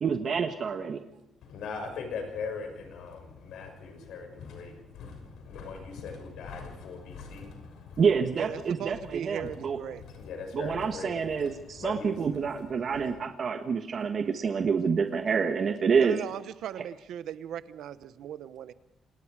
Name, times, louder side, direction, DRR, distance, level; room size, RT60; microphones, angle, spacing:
voice 1, 0.0-1.0 8.0-9.8 10.5-16.2, right 6 dB, 50° right, 6 dB, 1.4 m, -27 dB
voice 2, 1.4-8.0 9.4-9.5 9.9-12.3 12.8-13.1, left 5 dB, 80° left, 5 dB, 6.3 m, -40 dB
voice 3, 8.3-10.1 16.0-18.7, right 10 dB, 80° right, 14 dB, 1.0 m, -38 dB
27.5 x 20.0 x 5.0 m, 0.85 s
cardioid pair, 100°, 0 cm